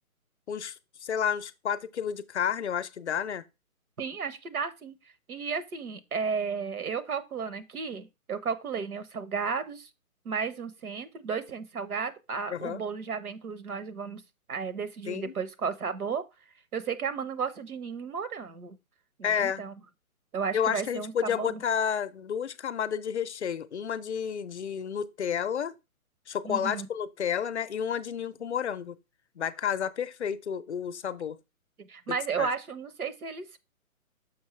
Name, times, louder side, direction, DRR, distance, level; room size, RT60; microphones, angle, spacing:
voice 1, 0.5-3.4 12.5-12.8 15.1-15.3 19.2-19.6 20.5-25.8 26.3-29.0 29.4-31.4 32.4-32.5, left 8 dB, 50° left, 0.5 m, -31 dB
voice 2, 4.0-5.0 5.3-9.9 10.2-14.2 14.5-16.2 16.7-18.8 19.2-19.7 20.3-21.6 26.4-26.9 31.9-33.6, right 5 dB, 85° right, 0.9 m, -33 dB
6.3 x 5.4 x 3.1 m
hypercardioid pair, 150°, 43 cm